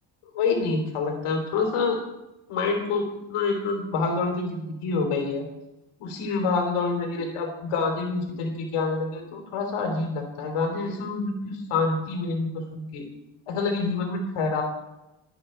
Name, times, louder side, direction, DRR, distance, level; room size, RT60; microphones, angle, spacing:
voice 1, 0.3-2.2 2.5-5.4 6.0-13.0 13.5-14.6, left 4 dB, 90° left, 3 dB, 3.6 m, -27 dB
25.5 x 9.1 x 4.5 m, 0.97 s
cardioid pair, 100°, 49 cm